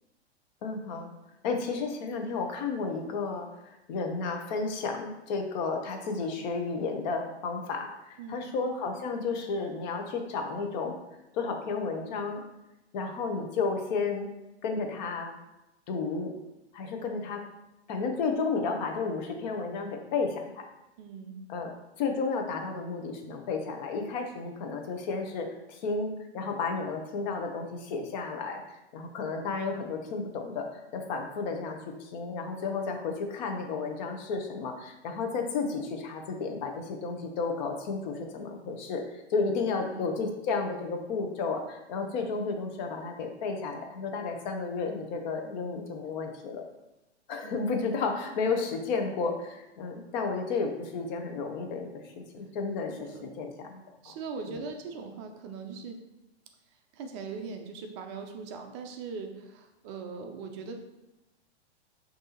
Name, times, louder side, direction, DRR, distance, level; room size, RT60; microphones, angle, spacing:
voice 1, 0.6-1.1 1.4-11.0 11.3-12.4 12.9-14.3 14.6-15.3 15.9-16.3 16.7-17.4 17.9-20.7 21.5-28.6 28.9-46.6 47.3-54.1 54.5-54.6, left 4 dB, 40° left, 4 dB, 0.8 m, -32 dB
voice 2, 8.2-8.5 21.0-21.4 39.9-40.0 47.4-47.6 53.0-53.3 54.0-56.0 56.9-60.7, right 5 dB, 25° right, 4 dB, 0.4 m, -40 dB
6.1 x 2.7 x 2.9 m, 0.96 s
hypercardioid pair, 125°, 34 cm